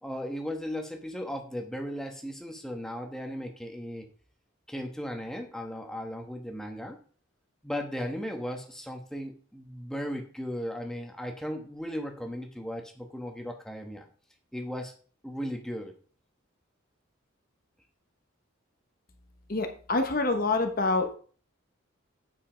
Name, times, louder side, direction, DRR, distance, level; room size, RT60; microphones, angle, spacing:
voice 1, 0.0-4.1 4.7-7.0 7.6-14.1 14.5-14.9 15.2-15.9, equal, 5° left, 3 dB, 1.2 m, -36 dB
voice 2, 19.5-21.1, left 3 dB, 45° left, 6 dB, 1.1 m, -26 dB
9.0 x 5.5 x 5.1 m, 0.42 s
head